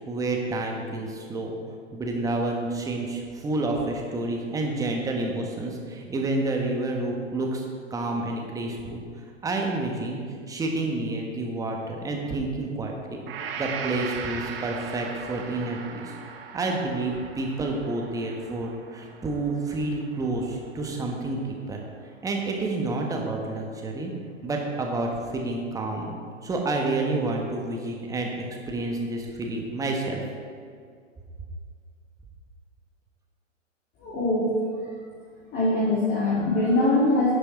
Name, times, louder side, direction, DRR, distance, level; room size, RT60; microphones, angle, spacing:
voice 1, 0.1-1.5 1.9-7.6 7.9-9.0 9.4-10.2 10.5-13.2 13.6-16.1 16.5-21.8 22.2-24.1 24.4-26.1 26.4-28.3 28.7-30.2, right 2 dB, 10° right, 1 dB, 1.2 m, -29 dB
Gong, 13.3-21.3, right 6 dB, 45° right, 1.0 m, -39 dB
voice 2, 34.0-34.6 35.5-37.3, left 2 dB, 25° left, -8 dB, 2.5 m, -22 dB
11.0 x 6.8 x 4.8 m, 2.1 s
figure-of-eight pair, 120°, 38 cm